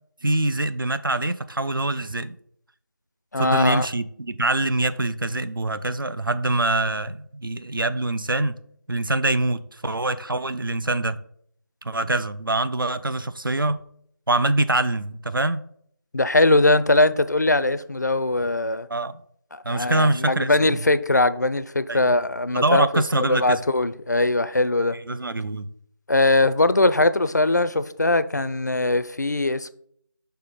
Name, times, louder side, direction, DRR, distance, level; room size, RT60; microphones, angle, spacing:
voice 1, 0.2-2.3 3.4-8.6 8.9-11.2 11.8-13.8 14.3-15.6 18.9-19.2 19.6-20.8 21.9-22.1 22.5-23.6 24.9-25.7, right 2 dB, 80° right, 0.5 m, -24 dB
voice 2, 3.3-3.9 16.1-18.9 19.5-25.0 26.1-29.7, left 2 dB, 55° left, 0.4 m, -21 dB
5.7 x 3.4 x 5.0 m
figure-of-eight pair, 170°, 11 cm